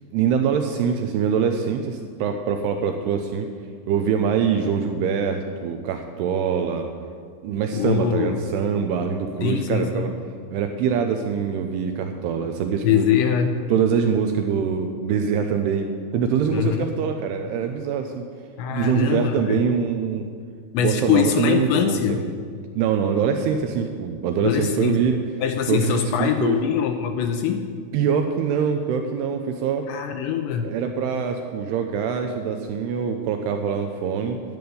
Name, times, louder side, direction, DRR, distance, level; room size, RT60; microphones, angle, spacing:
voice 1, 0.1-3.5 3.9-6.9 7.4-10.1 10.5-13.0 13.7-18.3 18.7-20.2 20.8-22.2 22.8-25.2 25.7-26.6 27.9-29.9 30.6-34.4, right 7 dB, 85° right, 5 dB, 2.3 m, -24 dB
voice 2, 7.7-8.4 9.4-10.1 12.8-13.6 16.5-16.9 18.6-19.6 20.7-22.2 24.4-25.0 25.4-27.7 29.9-30.7, left 8 dB, 85° left, 6 dB, 2.7 m, -23 dB
11.5 x 6.9 x 9.3 m, 2.1 s
omnidirectional pair, 5.4 m